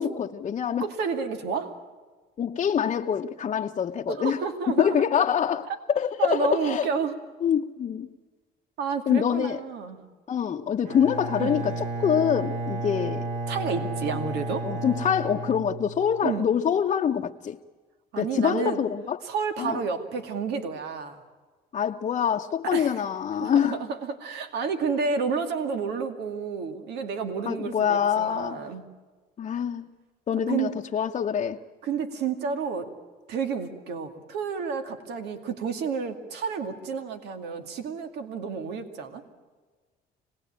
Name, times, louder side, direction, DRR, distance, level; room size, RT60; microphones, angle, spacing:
voice 1, 0.0-0.9 2.4-4.4 4.8-5.7 5.9-6.9 7.4-8.1 9.1-9.6 10.3-13.3 14.6-17.6 18.2-19.2 19.6-19.8 21.7-23.8 27.5-28.6 29.4-29.9 30.3-31.6, left 8 dB, 40° left, 0.9 m, -25 dB
voice 2, 0.8-1.8 4.1-5.0 5.7-5.8 6.2-7.2 8.8-10.0 11.4-11.6 13.5-14.7 16.2-16.5 18.1-18.8 19.2-21.2 22.6-23.0 23.4-28.8 30.5-30.7 31.8-32.9 33.3-39.2, right 5 dB, 80° right, 2.3 m, -30 dB
Bowed string instrument, 10.8-16.3, right 2 dB, 50° right, 2.7 m, -32 dB
26.5 x 19.5 x 8.8 m
cardioid pair, 110°, 17 cm